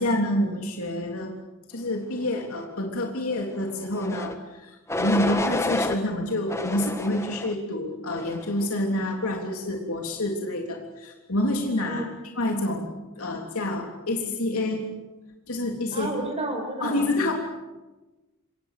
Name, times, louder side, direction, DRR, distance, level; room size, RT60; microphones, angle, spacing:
voice 1, 0.0-1.3 1.7-12.1 12.4-14.9 15.5-16.1 16.8-17.3, left 1 dB, 70° left, 1 dB, 3.4 m, -28 dB
sound 1, 3.9-4.3 4.9-6.0 6.5-7.5 8.1-8.5, left 2 dB, 10° left, 1.6 m, -29 dB
voice 2, 15.9-17.1, right 1 dB, 30° right, 4 dB, 5.2 m, -31 dB
28.5 x 25.0 x 6.8 m, 1.1 s
head